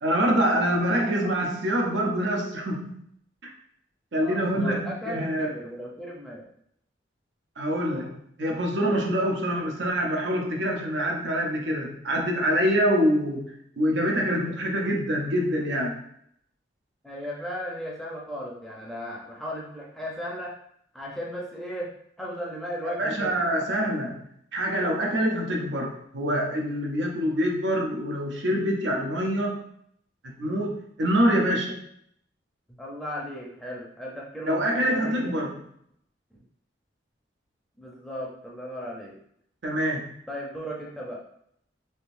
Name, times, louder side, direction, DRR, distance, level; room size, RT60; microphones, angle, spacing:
voice 1, 0.0-3.0 4.1-5.5 7.6-8.1 8.4-16.0 23.0-24.2 24.5-29.6 30.2-31.8 34.5-35.6 39.6-40.2, equal, 80° right, 0 dB, 0.6 m, -25 dB
voice 2, 4.2-6.4 17.0-20.6 20.9-23.4 32.8-35.3 37.8-39.2 40.3-41.2, equal, ahead, -4 dB, 0.5 m, -36 dB
3.6 x 2.6 x 2.5 m, 0.69 s
head